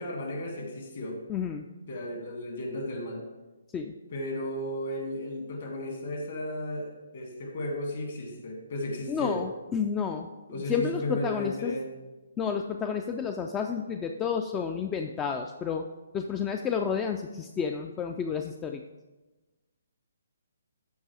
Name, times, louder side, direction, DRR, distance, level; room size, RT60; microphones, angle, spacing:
voice 1, 0.0-1.2 1.9-3.2 4.1-9.4 10.5-11.9, left 1 dB, 50° left, 1 dB, 2.2 m, -34 dB
voice 2, 1.3-1.6 3.7-3.9 9.1-11.8 12.4-15.9 16.1-18.8, left 6 dB, 15° left, 5 dB, 0.3 m, -31 dB
13.5 x 4.6 x 3.3 m, 1.1 s
figure-of-eight pair, 135°, 0 cm